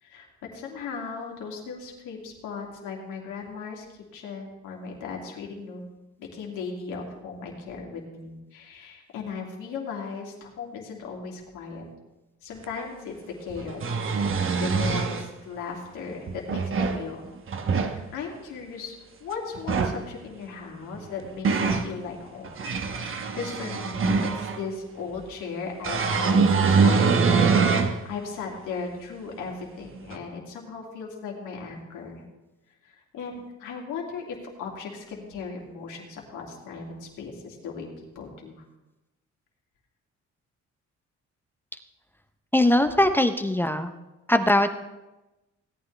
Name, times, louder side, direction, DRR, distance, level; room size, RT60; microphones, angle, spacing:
voice 1, 0.0-5.8 6.2-11.8 12.4-17.2 17.6-22.6 22.9-32.2 32.8-33.3 33.6-38.6, left 5 dB, 85° left, -1 dB, 2.6 m, -37 dB
sound 1, 12.6-12.7 13.6-15.2 16.3-17.0 17.5-18.0 19.5-20.0 21.0-21.9 22.4-24.6 25.8-28.0 28.5-28.6 30.1-30.2, right 5 dB, 45° right, 1.1 m, -23 dB
voice 2, 42.5-43.9 44.3-44.8, left 1 dB, 5° left, 8 dB, 0.6 m, -21 dB
17.0 x 9.5 x 3.3 m, 1.0 s
cardioid pair, 90°, 30 cm